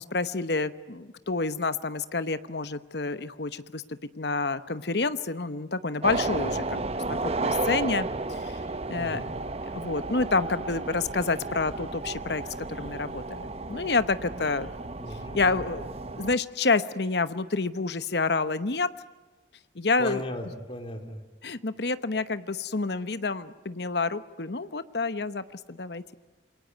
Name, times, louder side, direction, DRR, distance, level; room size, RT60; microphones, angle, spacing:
voice 1, 0.0-8.6 8.9-9.2 9.7-14.7 15.3-18.9 19.7-20.2 21.4-26.1, left 3 dB, 65° left, 13 dB, 1.0 m, -29 dB
sound 1, 6.0-16.4, right 3 dB, 35° right, 0.9 m, -33 dB
voice 2, 6.4-6.7 8.9-9.3 15.0-15.4 20.0-21.2, equal, 30° left, 5 dB, 3.3 m, -37 dB
28.0 x 22.5 x 9.5 m, 1.2 s
head